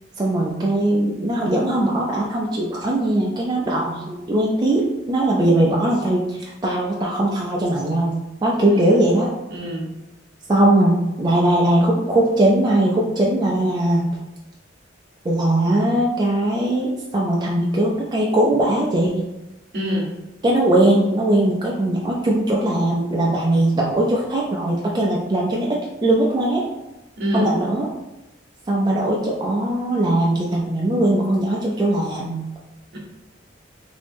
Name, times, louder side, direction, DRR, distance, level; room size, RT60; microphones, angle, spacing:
voice 1, 0.2-9.3 10.5-14.1 15.2-19.3 20.4-26.6 27.3-27.9 28.7-32.4, right 1 dB, 25° right, -3 dB, 0.4 m, -20 dB
voice 2, 8.6-9.0 9.5-9.9 19.7-20.1 27.2-27.5 32.9-33.0, equal, 60° right, -1 dB, 0.8 m, -25 dB
3.0 x 2.7 x 3.4 m, 0.97 s
head